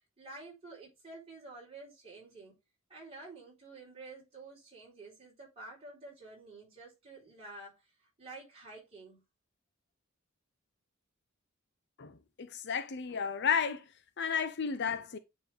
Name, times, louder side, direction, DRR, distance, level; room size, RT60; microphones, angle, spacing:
voice 1, 0.2-2.6 2.9-9.2, right 2 dB, 30° right, 4.2 m, -50 dB
voice 2, 12.4-13.8 14.2-15.2, left 6 dB, 55° left, 0.6 m, -32 dB
9.2 x 3.8 x 3.5 m
head